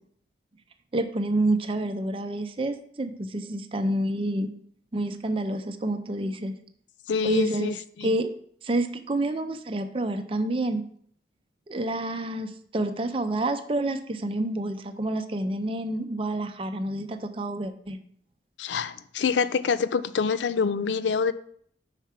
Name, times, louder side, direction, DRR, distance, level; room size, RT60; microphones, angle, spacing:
voice 1, 0.9-4.5 4.9-6.6 7.2-7.7 8.0-8.3 8.6-10.8 11.7-18.0, right 1 dB, 30° right, 7 dB, 0.5 m, -28 dB
voice 2, 7.1-8.1 18.6-21.3, left 5 dB, 85° left, 15 dB, 0.4 m, -26 dB
5.7 x 4.7 x 5.8 m, 0.62 s
head